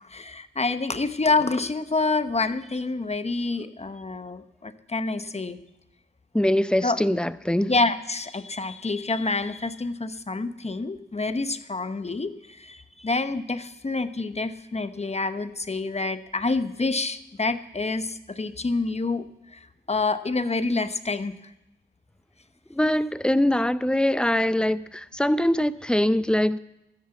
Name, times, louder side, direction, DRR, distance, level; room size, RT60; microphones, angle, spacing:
voice 1, 0.0-5.6 6.8-7.0 7.7-19.2 19.5-19.6 19.9-21.3, left 3 dB, 30° left, 11 dB, 1.0 m, -27 dB
voice 2, 6.3-7.7 22.7-26.6, left 1 dB, 5° left, 14 dB, 0.6 m, -23 dB
13.0 x 9.9 x 7.1 m, 0.92 s
cardioid pair, 45°, 21 cm